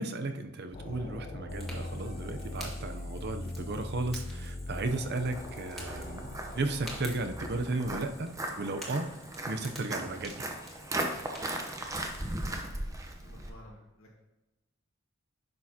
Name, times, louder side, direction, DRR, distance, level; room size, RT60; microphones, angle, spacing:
voice 1, 0.0-9.1 9.5-10.4, right 2 dB, 50° right, 7 dB, 0.7 m, -34 dB
sound 1, 0.7-7.6, left 1 dB, 40° left, 0.8 m, -40 dB
Fire, 1.5-12.6, equal, ahead, 2.0 m, -50 dB
Walk footsteps, 4.9-13.5, right 1 dB, 15° right, 0.8 m, -38 dB
voice 2, 11.9-12.8 13.2-14.2, left 1 dB, 75° left, -4 dB, 1.7 m, -55 dB
10.5 x 6.5 x 2.8 m, 0.99 s
head